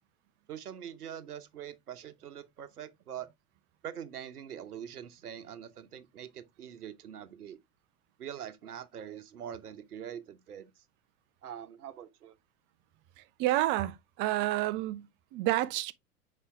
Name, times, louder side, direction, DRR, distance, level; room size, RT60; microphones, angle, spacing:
voice 1, 0.5-3.3 3.8-7.6 8.2-10.8 11.4-12.3, right 9 dB, 75° right, 1.0 m, -44 dB
voice 2, 13.2-15.9, right 15 dB, 25° right, 0.4 m, -30 dB
5.7 x 4.9 x 3.4 m
figure-of-eight pair, 90°, 45 cm